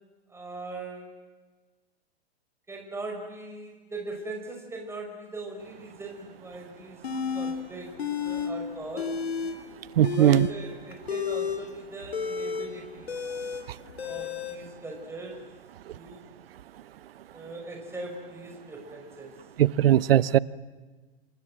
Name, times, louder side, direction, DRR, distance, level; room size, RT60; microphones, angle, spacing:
voice 1, 0.3-1.1 2.7-7.0 7.3-9.2 10.2-13.1 14.0-15.5 15.9-16.3 17.3-19.4, right 2 dB, 10° right, 1 dB, 5.9 m, -40 dB
sound 1, 7.0-7.6 8.0-8.5 8.8-9.6 9.9-14.6, left 6 dB, 80° left, 3.4 m, -31 dB
voice 2, 10.0-10.5 19.6-20.4, right 12 dB, 70° right, 19 dB, 1.0 m, -19 dB
28.0 x 27.0 x 7.6 m, 1.3 s
hypercardioid pair, 110°, 31 cm